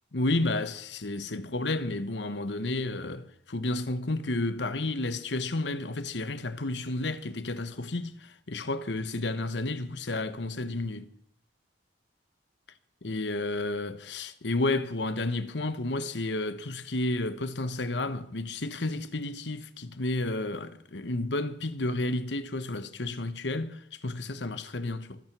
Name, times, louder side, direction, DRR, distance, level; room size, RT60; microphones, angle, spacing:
voice 1, 0.1-11.1 13.0-25.2, left 2 dB, 70° left, 1.2 m, -31 dB
24.0 x 9.1 x 6.1 m
head